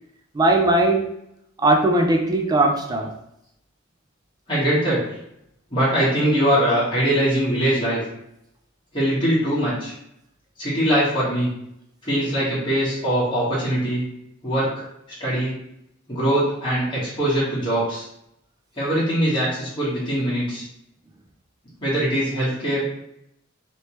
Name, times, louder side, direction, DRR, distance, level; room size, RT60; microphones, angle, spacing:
voice 1, 0.3-1.1 1.6-3.1, right 2 dB, 20° right, 2 dB, 0.4 m, -19 dB
voice 2, 4.5-5.1 5.7-8.0 8.9-9.9 10.6-11.5 12.0-14.1 14.4-14.9 15.2-15.5 16.1-18.1 18.8-20.6 21.8-22.9, right 1 dB, 25° left, -9 dB, 1.5 m, -22 dB
3.1 x 2.9 x 3.1 m, 0.78 s
head